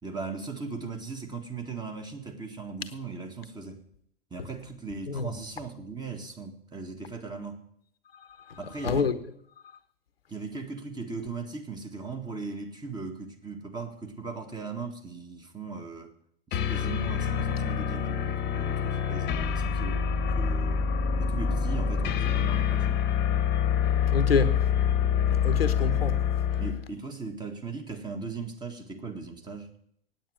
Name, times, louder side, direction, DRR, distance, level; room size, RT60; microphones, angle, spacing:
voice 1, 0.0-3.8 4.3-7.6 8.6-9.1 10.3-16.1 16.5-20.9 21.2-23.0 26.6-29.7, right 4 dB, 15° right, 1.8 m, -38 dB
voice 2, 8.5-9.1 24.1-24.5 25.3-26.2, left 5 dB, 80° left, 1.0 m, -27 dB
sound 1, 16.5-26.8, left 7 dB, 35° left, 1.2 m, -26 dB
9.2 x 8.7 x 9.5 m
figure-of-eight pair, 95°, 29 cm